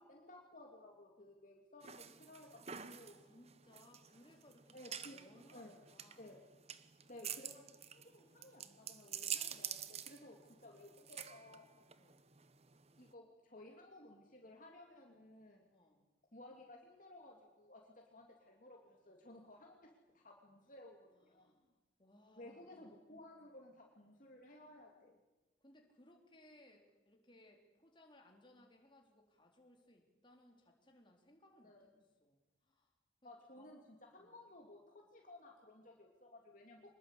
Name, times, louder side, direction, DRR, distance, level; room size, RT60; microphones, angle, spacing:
voice 1, 0.0-3.2 4.7-5.2 5.5-5.7 6.2-6.4 7.1-11.7 13.0-15.7 16.3-21.5 22.4-25.2 31.6-31.9 33.2-36.9, left 1 dB, 45° left, 0 dB, 2.7 m, -57 dB
sound 1, 1.8-13.1, right 9 dB, 35° right, 1.0 m, -48 dB
voice 2, 2.8-4.8 5.1-6.3 12.0-12.2 15.7-16.1 21.2-22.9 25.6-31.9 32.2-32.4 32.6-32.9 33.2-33.7 34.2-34.4 36.7-36.9, left 1 dB, 25° left, 1 dB, 3.8 m, -65 dB
25.0 x 21.0 x 8.3 m, 1.1 s
head